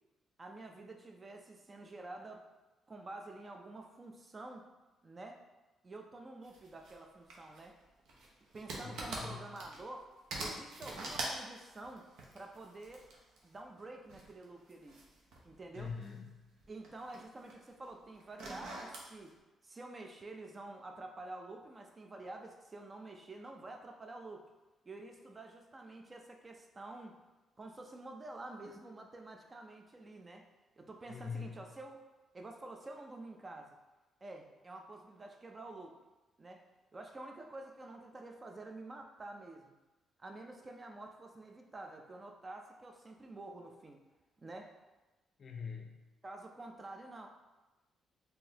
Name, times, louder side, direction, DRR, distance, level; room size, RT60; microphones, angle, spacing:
voice 1, 0.4-2.4 2.9-4.6 5.0-5.4 5.8-7.8 8.5-10.1 10.4-12.0 12.3-13.0 13.4-15.0 15.4-15.9 16.7-19.3 19.6-24.4 24.9-27.2 27.6-30.4 30.8-32.0 32.3-33.8 34.2-35.9 36.4-36.6 36.9-39.7 40.2-44.0 44.4-44.7 46.2-47.3, right 2 dB, 30° right, 3 dB, 0.4 m, -49 dB
sound 1, 6.4-6.9 7.3-10.0 10.3-13.5 14.1-16.2 16.5-17.7 18.2-19.1, right 2 dB, 85° right, 0.7 m, -44 dB
voice 2, 8.8-9.4 15.7-16.5 31.1-31.6 45.4-46.0, left 5 dB, 50° left, 3 dB, 0.4 m, -44 dB
3.7 x 2.7 x 2.8 m, 1.1 s
cardioid pair, 90°, 0 cm